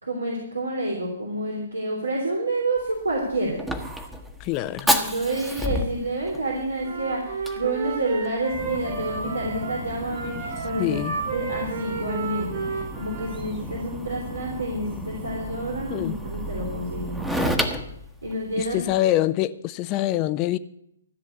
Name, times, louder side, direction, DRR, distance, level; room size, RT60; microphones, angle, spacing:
voice 1, 0.0-3.6 4.8-11.0 11.3-17.5 18.2-18.8, right 1 dB, 85° right, 3.2 m, -29 dB
Fire, 2.8-19.0, equal, 5° right, 1.2 m, -32 dB
voice 2, 4.4-4.9 10.8-11.2 15.9-16.2 18.6-20.6, left 14 dB, 30° left, 0.5 m, -25 dB
Wind instrument woodwind instrument, 6.8-13.4, right 5 dB, 55° right, 4.8 m, -33 dB
14.0 x 7.1 x 8.2 m
figure-of-eight pair, 130°, 0 cm